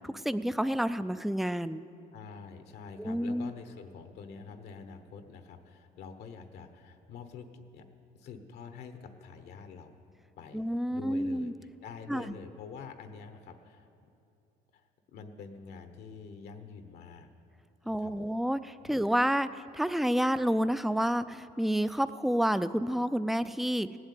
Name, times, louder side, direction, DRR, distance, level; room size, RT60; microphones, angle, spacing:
voice 1, 0.2-1.8 3.0-3.5 10.5-11.5 12.1-12.2 17.9-24.0, equal, ahead, 13 dB, 0.4 m, -29 dB
voice 2, 2.1-7.5 7.7-7.8 8.1-9.9 10.4-10.6 10.9-11.5 11.8-13.9 14.7-14.8 15.1-17.3 17.8-18.4 18.8-19.0, left 5 dB, 70° left, 8 dB, 1.1 m, -46 dB
17.0 x 8.0 x 8.4 m, 2.6 s
cardioid pair, 110°, 17 cm